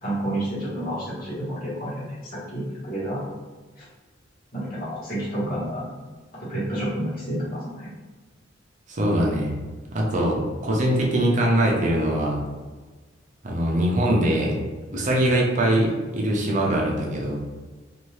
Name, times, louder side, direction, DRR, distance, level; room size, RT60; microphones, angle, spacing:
voice 1, 0.0-3.2 3.8-3.9 4.5-5.9 6.4-7.9, right 1 dB, 50° left, -9 dB, 1.4 m, -30 dB
voice 2, 8.9-9.5 9.9-12.4 13.4-14.6 14.9-17.4, right 1 dB, 40° right, -2 dB, 0.7 m, -22 dB
2.7 x 2.6 x 3.2 m, 1.3 s
head